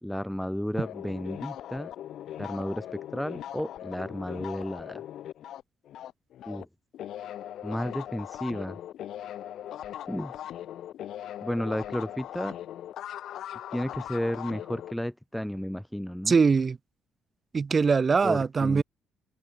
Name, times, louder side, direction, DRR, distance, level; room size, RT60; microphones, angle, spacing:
voice 1, 0.0-1.9 2.4-5.0 6.5-6.7 7.6-8.8 10.1-10.3 11.4-12.6 13.7-16.4 18.2-18.8, equal, ahead, 1.4 m, -33 dB
sound 1, 0.8-6.7 6.9-14.9, left 11 dB, 65° left, 2.4 m, -40 dB
voice 2, 16.3-16.8 17.5-18.8, right 5 dB, 25° right, 1.1 m, -22 dB
cardioid pair, 160°, 0 cm